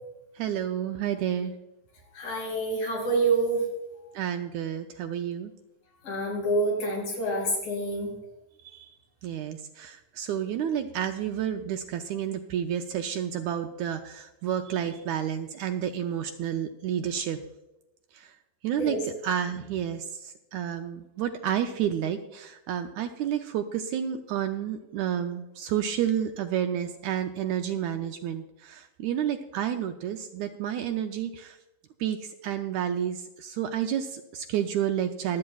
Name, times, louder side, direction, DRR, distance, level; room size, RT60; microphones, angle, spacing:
voice 1, 0.4-1.5 4.1-5.5 8.6-9.0 9.2-17.4 18.1-18.3 18.6-19.0 19.2-31.6 32.0-35.4, right 9 dB, 80° right, 6 dB, 1.7 m, -30 dB
voice 2, 2.1-3.7 4.0-4.2 6.0-8.1 18.8-19.0, right 2 dB, 90° left, -3 dB, 6.5 m, -27 dB
25.0 x 8.6 x 2.3 m, 0.93 s
omnidirectional pair, 3.8 m